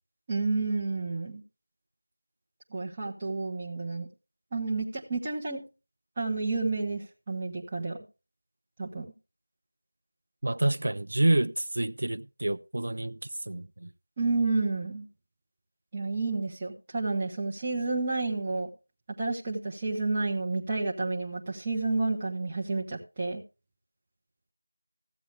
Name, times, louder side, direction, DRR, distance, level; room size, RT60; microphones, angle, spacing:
voice 1, 0.3-1.4 2.7-4.1 4.5-5.6 6.2-8.0 8.8-9.1 14.2-15.1 15.9-18.7 19.2-23.4, right 3 dB, 15° right, 1.3 m, -30 dB
voice 2, 10.4-13.1 13.5-13.9, right 1 dB, 50° right, 0.6 m, -28 dB
15.0 x 8.1 x 3.4 m
figure-of-eight pair, 175°, 0 cm